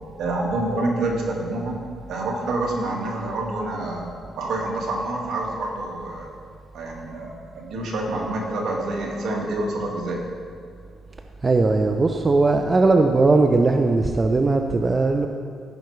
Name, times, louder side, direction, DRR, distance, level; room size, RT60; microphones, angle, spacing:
voice 1, 0.2-1.8 2.1-6.3 6.7-10.2, right 2 dB, 70° right, -1 dB, 1.7 m, -27 dB
voice 2, 11.4-15.3, right 3 dB, 30° right, 5 dB, 0.4 m, -19 dB
14.0 x 5.8 x 3.1 m, 2.2 s
cardioid pair, 90°, 0 cm